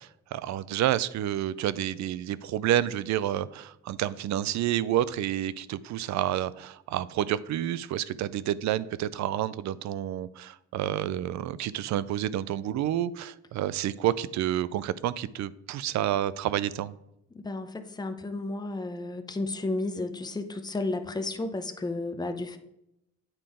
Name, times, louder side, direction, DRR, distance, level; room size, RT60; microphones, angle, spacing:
voice 1, 0.0-16.9, right 12 dB, 65° right, 17 dB, 0.4 m, -29 dB
voice 2, 17.3-22.6, left 2 dB, 15° left, 7 dB, 0.7 m, -32 dB
8.9 x 3.8 x 4.9 m, 0.81 s
cardioid pair, 90°, 30 cm